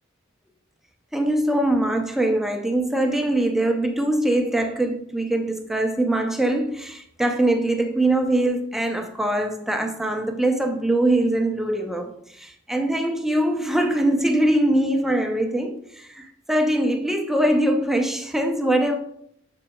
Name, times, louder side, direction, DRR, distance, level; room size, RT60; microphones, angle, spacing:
voice 1, 1.1-19.0, right 1 dB, ahead, 0.5 m, -22 dB
7.2 x 7.0 x 2.3 m
head